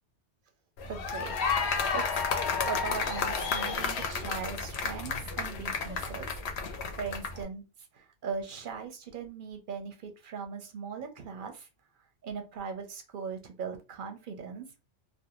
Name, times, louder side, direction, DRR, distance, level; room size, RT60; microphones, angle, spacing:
sound 1, 0.8-7.4, left 5 dB, 70° left, 0.8 m, -31 dB
voice 1, 0.8-1.4 1.9-2.3 2.6-6.4 6.9-7.6 7.9-11.7 12.2-14.8, right 6 dB, 55° right, 5 dB, 0.6 m, -39 dB
2.5 x 2.2 x 2.8 m, 0.28 s
omnidirectional pair, 1.2 m